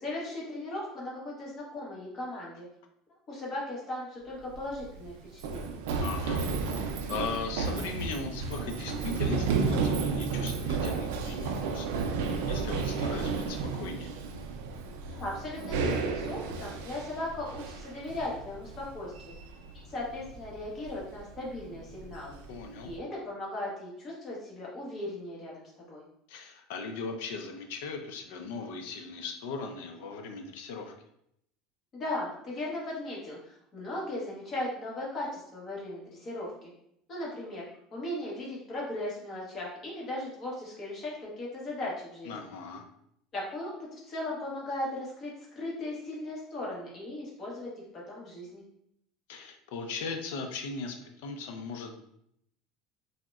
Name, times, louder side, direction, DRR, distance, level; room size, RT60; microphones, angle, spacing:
voice 1, 0.0-2.7 3.3-5.8 15.1-19.3 19.9-22.3 22.8-26.0 31.9-36.7 37.1-37.7 37.9-42.3 43.3-48.6, left 1 dB, 35° left, -4 dB, 1.0 m, -37 dB
Run, 4.4-23.0, right 4 dB, 90° right, 0.3 m, -33 dB
voice 2, 6.0-11.9 12.5-14.1 22.5-22.9 26.3-30.9 42.3-42.8 49.3-52.0, left 4 dB, 85° left, 5 dB, 0.4 m, -38 dB
3.6 x 2.1 x 2.3 m, 0.74 s
supercardioid pair, 135°, 0 cm